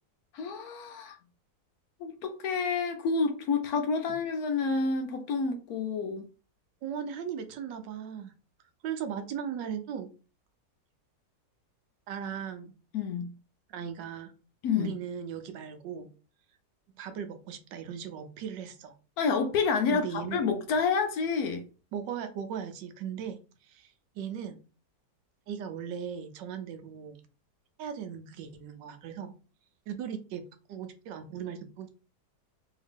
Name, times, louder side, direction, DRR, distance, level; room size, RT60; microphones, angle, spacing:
voice 1, 0.3-1.2 2.0-6.3 12.9-13.3 14.6-15.0 19.2-21.6, left 5 dB, 70° left, 0.9 m, -29 dB
voice 2, 6.8-8.3 8.8-10.1 12.1-12.7 13.7-14.3 14.8-16.1 17.0-18.9 19.9-20.4 21.9-24.6 25.5-27.2 27.8-29.3 29.9-30.4 30.7-31.9, right 8 dB, 85° right, 1.3 m, -38 dB
3.2 x 2.8 x 3.3 m
omnidirectional pair, 1.9 m